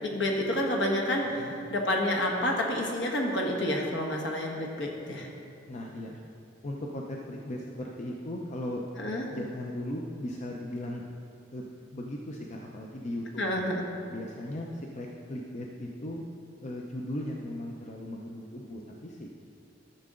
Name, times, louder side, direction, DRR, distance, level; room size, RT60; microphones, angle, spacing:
voice 1, 0.0-5.3 9.0-9.3 13.4-13.8, left 1 dB, 65° left, 0 dB, 1.3 m, -29 dB
voice 2, 1.2-1.6 5.7-6.2 6.6-8.8 9.3-11.0 11.5-13.7 14.1-16.3 16.6-19.3, left 1 dB, 40° left, -1 dB, 0.6 m, -37 dB
13.0 x 6.7 x 3.7 m, 2.5 s
head